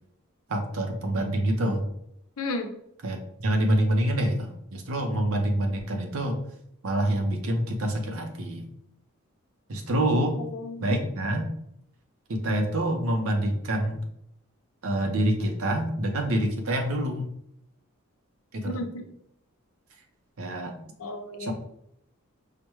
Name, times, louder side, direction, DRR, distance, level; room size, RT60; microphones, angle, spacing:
voice 1, 0.5-1.9 3.0-6.4 6.8-8.7 9.7-10.4 10.8-11.5 12.3-14.0 14.8-17.3 18.5-18.8 20.4-20.8 21.4-21.5, right 1 dB, 70° right, 3 dB, 0.7 m, -26 dB
voice 2, 2.4-2.7 10.3-11.0 18.6-19.0 21.0-21.5, left 2 dB, 70° left, 4 dB, 0.6 m, -33 dB
4.9 x 2.1 x 3.0 m, 0.74 s
head